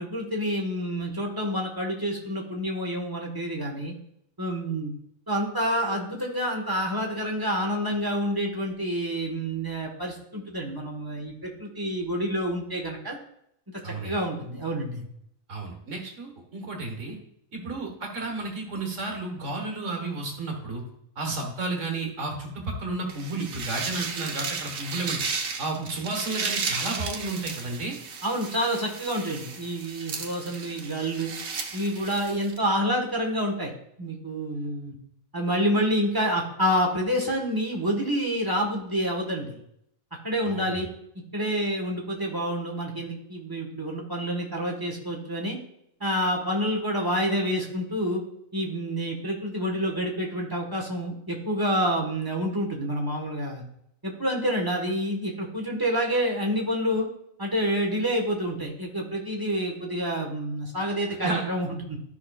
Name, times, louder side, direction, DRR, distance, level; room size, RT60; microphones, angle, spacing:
voice 1, 0.0-3.9 4.4-4.9 5.3-13.2 13.7-15.0 25.8-25.9 28.2-31.3 31.7-33.7 34.0-34.9 35.3-39.6 40.2-40.9 41.3-45.6 46.0-48.2 48.5-53.6 54.0-57.1 57.4-62.0, equal, 15° right, 0 dB, 1.3 m, -28 dB
voice 2, 13.8-14.2 15.5-17.2 17.5-20.8 21.1-25.2 25.6-28.0 40.4-40.8 61.2-61.4, right 2 dB, 65° right, 1 dB, 1.8 m, -32 dB
sound 1, 23.1-32.6, right 5 dB, 85° right, 1.4 m, -34 dB
13.0 x 5.6 x 2.4 m, 0.74 s
omnidirectional pair, 1.4 m